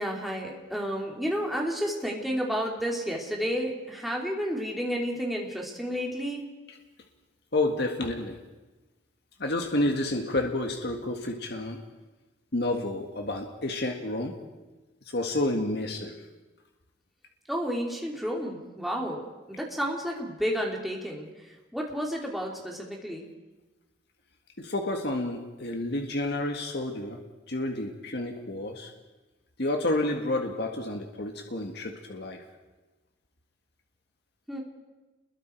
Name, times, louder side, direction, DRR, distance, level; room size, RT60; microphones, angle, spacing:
voice 1, 0.0-6.5 17.5-21.3 21.7-23.3 34.5-34.6, equal, ahead, -1 dB, 3.2 m, -31 dB
voice 2, 7.5-8.4 9.4-11.8 12.5-14.4 15.1-16.1 24.6-27.2 27.5-28.9 29.6-32.4, left 2 dB, 65° left, 3 dB, 1.9 m, -30 dB
29.0 x 22.0 x 4.7 m, 1.2 s
head